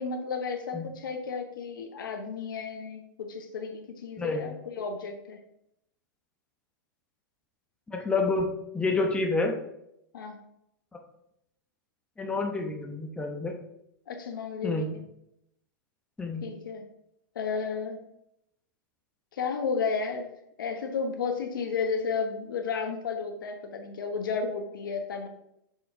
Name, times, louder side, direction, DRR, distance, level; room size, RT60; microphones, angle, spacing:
voice 1, 0.0-5.4 10.1-10.4 14.1-14.9 16.4-16.8 17.3-18.0 19.3-20.3 20.6-25.3, left 5 dB, 85° left, 4 dB, 1.1 m, -32 dB
voice 2, 4.2-4.5 7.9-9.6 12.2-13.5 14.6-14.9 16.2-16.5, left 3 dB, 10° left, 1 dB, 1.0 m, -28 dB
6.2 x 4.5 x 3.7 m, 0.78 s
hypercardioid pair, 125°, 11 cm